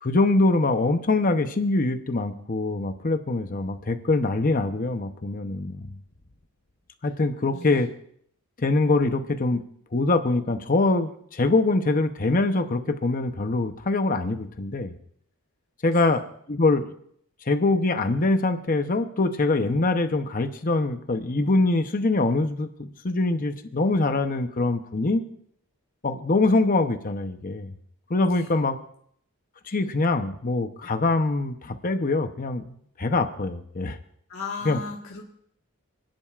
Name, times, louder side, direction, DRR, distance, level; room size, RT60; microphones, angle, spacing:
voice 1, 0.0-5.8 7.0-7.9 8.6-9.6 9.9-14.9 15.8-16.2 16.5-16.8 17.5-25.2 26.0-27.7 28.1-28.8 29.7-34.0 34.6-34.8, left 2 dB, 40° left, 7 dB, 0.8 m, -24 dB
voice 2, 7.5-7.8 15.9-16.1 28.3-28.5 34.3-35.2, left 4 dB, 65° left, -2 dB, 1.6 m, -36 dB
30.0 x 10.5 x 2.5 m, 0.65 s
head